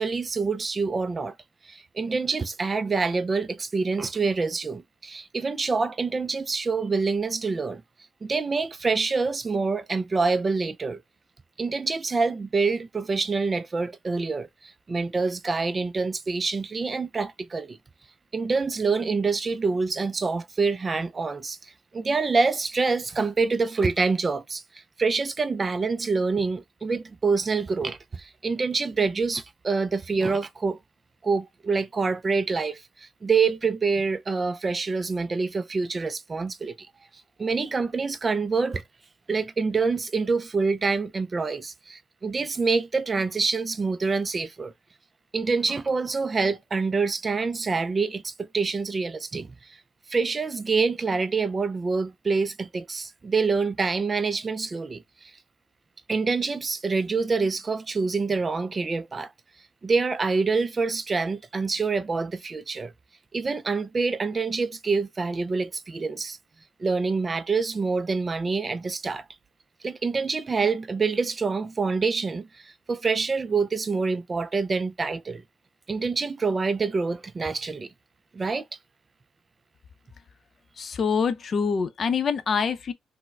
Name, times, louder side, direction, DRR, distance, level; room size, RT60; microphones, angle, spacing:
voice 1, 0.0-1.3 1.7-7.8 8.2-11.0 11.6-14.5 14.9-17.8 18.3-21.6 21.9-24.6 25.0-30.8 31.2-36.9 37.4-38.8 39.3-44.7 45.3-49.5 50.1-55.0 56.1-59.3 59.8-62.9 63.3-66.4 66.8-69.2 69.8-75.4 75.9-77.9 78.3-78.6, right 4 dB, 30° right, 0.3 m, -26 dB
voice 2, 80.8-82.9, left 6 dB, 50° left, 0.5 m, -25 dB
4.5 x 2.1 x 2.2 m
cardioid pair, 90°, 0 cm